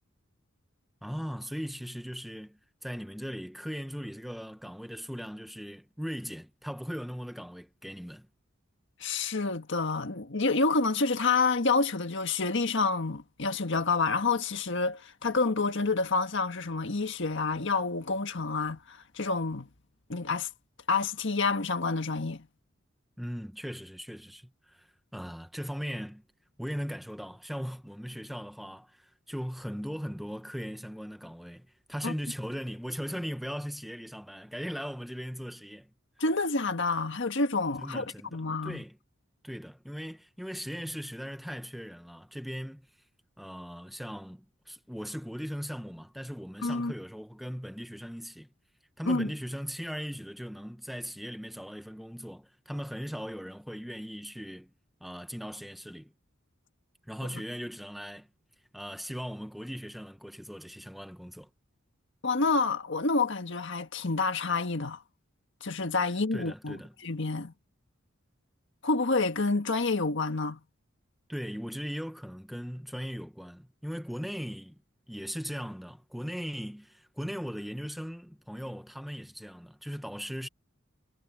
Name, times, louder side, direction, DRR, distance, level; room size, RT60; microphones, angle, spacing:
voice 1, 1.0-8.3 23.2-24.9 25.1-26.2 26.6-35.9 37.8-39.0 39.4-42.9 43.4-48.5 49.0-54.7 55.0-56.1 57.1-58.3 58.7-61.5 66.3-66.9 71.3-74.8 75.1-80.5, equal, ahead, 1.0 m, -39 dB
voice 2, 9.0-19.7 20.1-20.5 20.9-22.5 32.0-32.1 36.2-38.0 38.3-38.8 46.6-46.9 49.1-49.3 57.3-57.4 62.2-65.0 65.6-67.5 68.8-70.6, left 3 dB, 65° left, 1.7 m, -28 dB
head